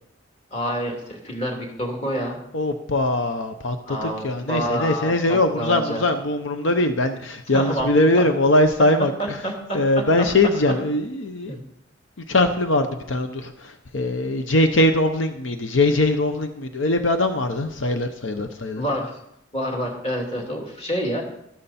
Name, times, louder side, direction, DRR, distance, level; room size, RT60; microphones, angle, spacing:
voice 1, 0.5-2.4 3.9-6.0 7.5-8.2 9.2-10.5 11.5-11.6 18.8-19.1 19.5-21.2, equal, 30° left, 0 dB, 2.7 m, -28 dB
voice 2, 2.5-9.4 9.7-11.6 12.3-18.8, left 1 dB, 80° left, 7 dB, 0.9 m, -21 dB
13.0 x 12.5 x 4.3 m, 0.77 s
head